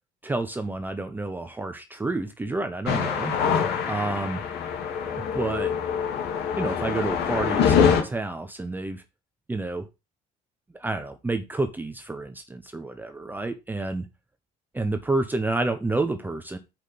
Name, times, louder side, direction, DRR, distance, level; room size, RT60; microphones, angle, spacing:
voice 1, 0.2-3.4 3.9-4.4 5.3-5.7 6.6-9.0 9.5-9.8 10.8-14.0 14.7-16.6, right 2 dB, 10° right, 7 dB, 0.8 m, -29 dB
sound 1, 2.9-8.0, left 7 dB, 70° left, 2.3 m, -24 dB
6.0 x 5.0 x 6.8 m, 0.26 s
cardioid pair, 145°, 18 cm